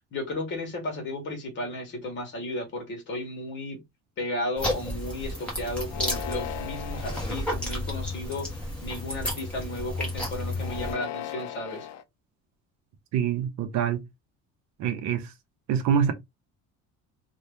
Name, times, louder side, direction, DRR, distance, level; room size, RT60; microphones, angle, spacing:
voice 1, 0.1-3.8 4.2-8.5 8.8-11.9, left 1 dB, 35° left, 1.2 m, -34 dB
sound 1, 4.6-10.9, left 1 dB, 5° left, 1.0 m, -32 dB
sound 2, 5.8-7.3 8.0-8.6 10.5-12.0, left 12 dB, 55° left, 0.4 m, -38 dB
voice 2, 13.1-14.0 14.8-15.3 15.7-16.1, right 8 dB, 60° right, 0.7 m, -25 dB
2.8 x 2.3 x 3.3 m
cardioid pair, 180°, 32 cm